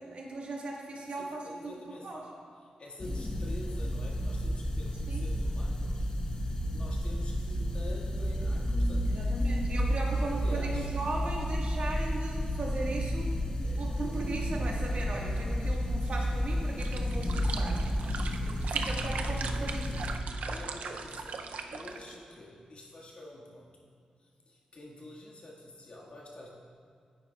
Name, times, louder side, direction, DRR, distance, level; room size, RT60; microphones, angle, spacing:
voice 1, 0.0-2.2 5.1-5.2 9.1-13.3 13.7-17.8 18.4-19.9, right 2 dB, 60° right, -2 dB, 1.5 m, -38 dB
voice 2, 1.0-2.1 2.6-6.1 6.7-9.5 10.1-11.0 20.2-21.4 21.7-23.9 24.2-26.7, left 1 dB, 55° left, -4 dB, 1.7 m, -48 dB
sound 1, 3.0-20.2, equal, 35° left, 1.1 m, -31 dB
sound 2, 16.8-22.1, right 5 dB, 85° right, 0.5 m, -39 dB
10.0 x 9.2 x 2.3 m, 2.2 s
cardioid pair, 80°, 2 cm